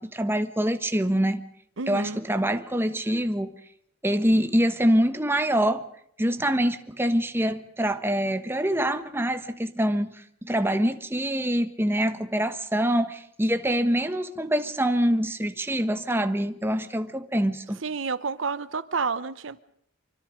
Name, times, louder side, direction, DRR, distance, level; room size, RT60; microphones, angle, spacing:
voice 1, 0.0-1.4 1.9-3.6 4.0-5.8 6.2-17.8, equal, 10° right, 1.3 m, -25 dB
voice 2, 1.8-2.2 17.8-19.6, right 4 dB, 70° right, 0.9 m, -30 dB
25.5 x 25.0 x 5.1 m
head